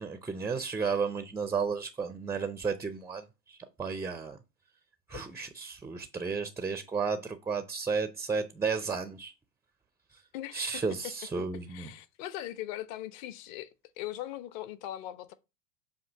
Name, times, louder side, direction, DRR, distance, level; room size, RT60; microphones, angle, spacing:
voice 1, 0.0-4.4 5.1-9.3 10.5-11.9, right 5 dB, 5° right, 0.4 m, -33 dB
voice 2, 10.3-10.8 11.7-15.3, left 13 dB, 50° left, 1.0 m, -40 dB
7.8 x 2.7 x 5.9 m
hypercardioid pair, 90°, 49 cm